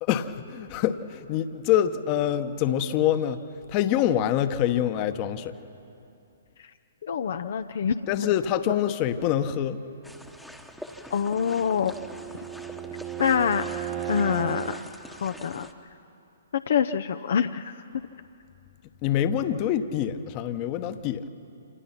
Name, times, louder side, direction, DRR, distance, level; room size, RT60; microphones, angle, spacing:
voice 1, 0.0-3.4 3.7-5.5 8.1-9.8 19.0-21.3, left 10 dB, 30° left, 10 dB, 1.1 m, -25 dB
voice 2, 7.0-7.9 11.1-11.9 13.2-14.8 15.2-15.7 16.7-17.7, left 7 dB, 55° left, 8 dB, 0.6 m, -25 dB
sound 1, 10.0-15.7, left 1 dB, ahead, 1.2 m, -45 dB
Bowed string instrument, 11.1-14.9, right 11 dB, 20° right, 0.9 m, -35 dB
27.5 x 27.0 x 5.9 m, 2.8 s
figure-of-eight pair, 125°, 0 cm